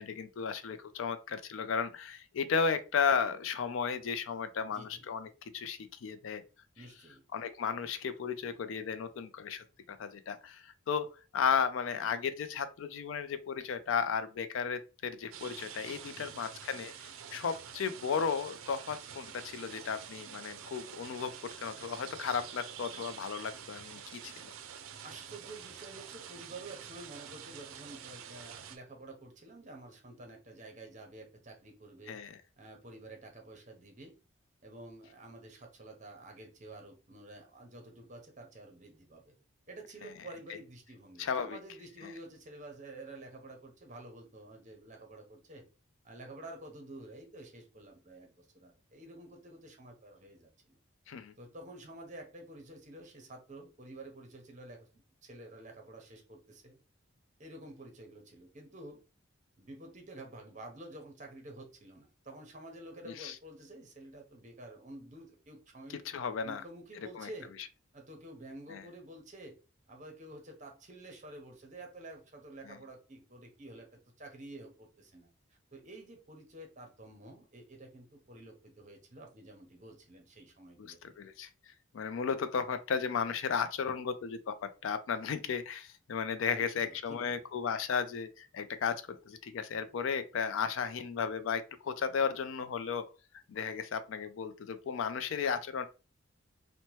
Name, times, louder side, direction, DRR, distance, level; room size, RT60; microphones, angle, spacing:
voice 1, 0.0-6.4 6.8-6.9 7.3-11.1 11.3-21.3 21.6-24.5 32.1-32.4 41.2-41.6 51.1-51.3 63.1-63.3 66.1-66.6 67.1-67.3 68.7-68.8 72.7-72.8 80.8-81.5 81.9-93.0 93.5-95.9, left 6 dB, 70° left, 0.3 m, -34 dB
voice 2, 4.6-5.1 6.8-7.2 16.1-16.4 25.0-32.2 32.6-34.1 34.6-39.3 39.7-45.6 46.0-50.8 51.4-54.9 55.2-56.8 57.4-59.0 59.6-66.0 66.4-67.5 67.9-69.6 69.9-81.2 86.4-87.4, right 2 dB, 35° right, 0.7 m, -50 dB
sound 1, 15.3-28.8, right 8 dB, 90° right, 0.4 m, -47 dB
2.8 x 2.1 x 3.0 m
head